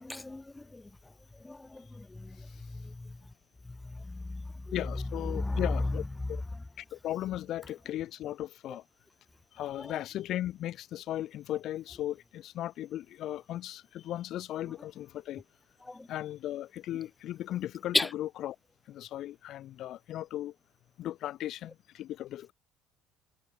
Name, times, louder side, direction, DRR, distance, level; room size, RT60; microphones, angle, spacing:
voice 1, 0.0-0.8 1.4-2.4 2.7-3.1 4.1-4.4 5.3-5.6 15.9-16.1 17.9-18.1, left 2 dB, 10° left, 0.5 m, -34 dB
voice 2, 4.7-6.4 6.8-8.8 9.5-15.4 16.1-18.6 18.9-20.5 21.0-22.5, left 13 dB, 50° left, 6.4 m, -37 dB
open air
cardioid pair, 160°, 0 cm